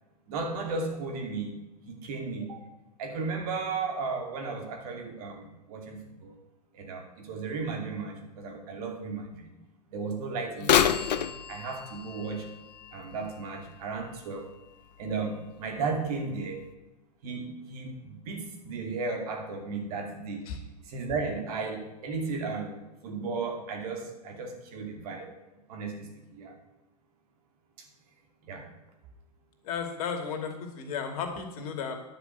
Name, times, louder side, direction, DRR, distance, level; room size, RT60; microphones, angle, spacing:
voice 1, 0.3-1.6 1.9-2.6 3.0-6.4 6.7-9.5 9.9-11.1 11.5-14.5 15.0-16.7 17.2-20.5 20.8-22.8 23.0-25.3 25.7-26.5 27.8-27.9 28.4-28.7, right 4 dB, 60° right, 3 dB, 2.7 m, -35 dB
Bird vocalization bird call bird song / Telephone, 10.6-14.4 15.0-15.1 15.9-16.0 16.6-16.7, left 9 dB, 75° left, 0.8 m, -29 dB
voice 2, 29.6-32.0, left 6 dB, 60° left, 5 dB, 2.5 m, -34 dB
10.0 x 6.0 x 8.0 m, 1.0 s
hypercardioid pair, 110°, 21 cm